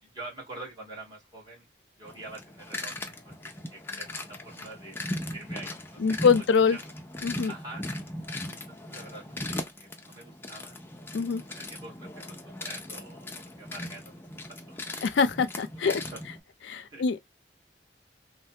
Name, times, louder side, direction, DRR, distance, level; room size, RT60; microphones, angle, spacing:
voice 1, 0.0-1.7 2.0-6.4 6.7-6.9 7.5-7.9 8.5-14.2 14.5-14.9 15.8-16.2 16.8-17.0, right 2 dB, 25° right, 1.5 m, -46 dB
sound 1, 2.1-16.4, left 1 dB, 10° left, 0.4 m, -39 dB
voice 2, 6.0-6.8 7.2-7.5 11.1-11.4 15.0-16.0 16.7-17.2, left 5 dB, 80° left, 0.4 m, -24 dB
3.2 x 2.1 x 2.7 m
head